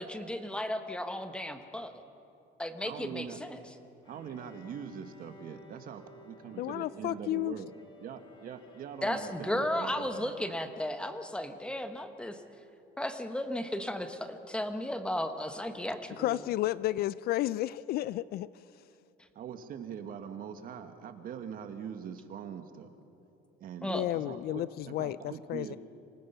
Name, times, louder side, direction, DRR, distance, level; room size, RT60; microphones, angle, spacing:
voice 1, 0.0-2.0 2.6-3.6 9.0-12.4 13.0-16.4 23.8-24.1, left 1 dB, 5° left, 8 dB, 1.1 m, -34 dB
voice 2, 2.8-3.4 4.0-7.7 8.0-10.3 15.8-16.0 19.3-22.9 23.6-25.8, right 8 dB, 50° right, 8 dB, 1.5 m, -43 dB
Bowed string instrument, 4.0-10.8, left 1 dB, 25° left, 2.1 m, -56 dB
voice 3, 6.6-7.5 16.2-18.5 23.9-25.8, left 15 dB, 55° left, 19 dB, 0.4 m, -32 dB
26.5 x 19.0 x 5.7 m, 2.7 s
cardioid pair, 140°, 19 cm